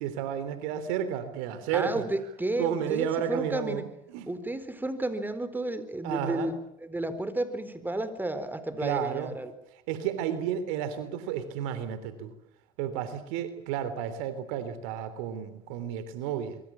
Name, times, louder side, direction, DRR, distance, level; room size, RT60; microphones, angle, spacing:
voice 1, 0.0-2.1 2.6-4.3 6.0-6.5 8.8-9.4 9.9-12.3 12.8-16.6, right 9 dB, 80° right, 12 dB, 3.6 m, -32 dB
voice 2, 1.7-3.8 4.3-6.5 6.8-9.5, right 1 dB, 10° right, 12 dB, 4.3 m, -32 dB
26.0 x 23.5 x 7.4 m, 0.75 s
hypercardioid pair, 80°, 17 cm